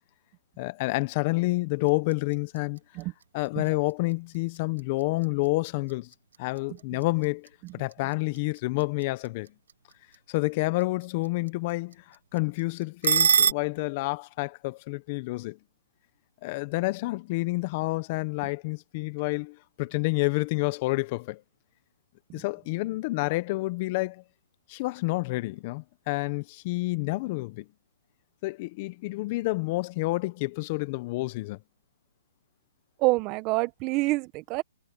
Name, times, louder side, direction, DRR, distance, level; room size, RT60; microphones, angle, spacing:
voice 1, 0.6-2.8 3.3-6.1 6.4-9.5 10.3-15.6 16.4-21.4 22.3-24.2 24.7-27.6 28.4-31.6, left 23 dB, 35° left, 1.0 m, -29 dB
sound 1, 1.7-13.5, right 6 dB, 75° right, 1.9 m, -33 dB
voice 2, 33.0-34.6, right 22 dB, 30° right, 1.6 m, -28 dB
hypercardioid pair, 150°, 0 cm